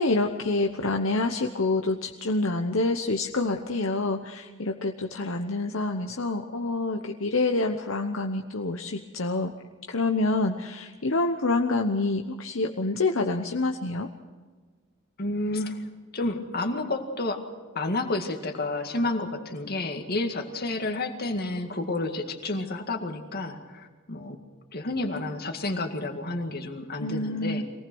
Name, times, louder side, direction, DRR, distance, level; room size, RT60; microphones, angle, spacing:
voice 1, 0.0-9.5 9.9-14.1 27.0-27.6, left 2 dB, 65° left, 4 dB, 1.0 m, -27 dB
voice 2, 15.2-15.8 16.1-17.4 17.8-24.4 24.7-27.6, left 2 dB, 45° left, 5 dB, 2.1 m, -30 dB
23.5 x 18.5 x 6.3 m, 1.5 s
head